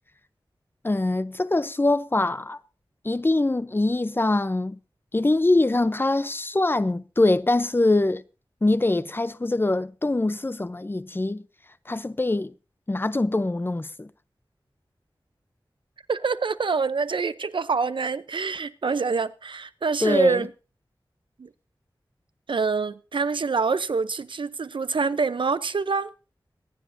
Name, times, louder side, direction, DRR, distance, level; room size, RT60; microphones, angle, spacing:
voice 1, 0.8-2.6 3.0-4.8 5.1-8.2 8.6-11.4 11.9-12.5 12.9-14.1 20.0-20.5, left 2 dB, 25° left, 0.6 m, -23 dB
voice 2, 16.1-20.5 21.4-21.5 22.5-26.1, right 4 dB, 70° right, 0.7 m, -26 dB
25.0 x 10.0 x 2.7 m
wide cardioid pair, 70°, 9 cm